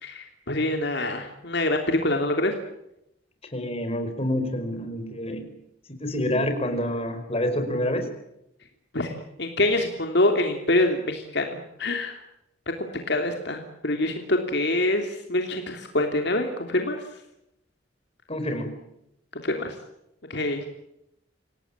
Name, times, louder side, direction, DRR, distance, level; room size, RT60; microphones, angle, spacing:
voice 1, 0.0-2.5 8.9-12.2 12.8-17.0 19.3-19.7 20.3-20.7, left 1 dB, 60° left, 4 dB, 3.1 m, -25 dB
voice 2, 3.5-5.4 6.0-8.1 18.3-18.8, left 1 dB, 30° left, 6 dB, 5.1 m, -27 dB
28.0 x 18.5 x 8.9 m, 0.83 s
head